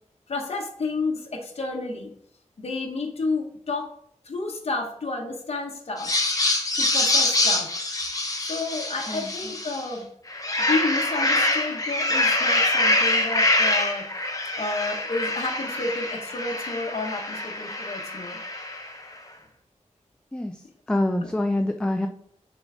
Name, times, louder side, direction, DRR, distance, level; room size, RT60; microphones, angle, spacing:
voice 1, 0.3-2.1 2.6-3.9 4.2-6.1 6.8-7.7 8.4-10.1 10.6-14.1 14.5-18.4, left 3 dB, 60° left, 0 dB, 1.0 m, -31 dB
sound 1, 6.0-9.9 10.3-19.0, left 2 dB, 30° left, 0.8 m, -25 dB
voice 2, 20.9-22.1, left 1 dB, 5° left, 5 dB, 0.4 m, -25 dB
6.6 x 3.8 x 3.7 m, 0.66 s
wide cardioid pair, 110°, 12 cm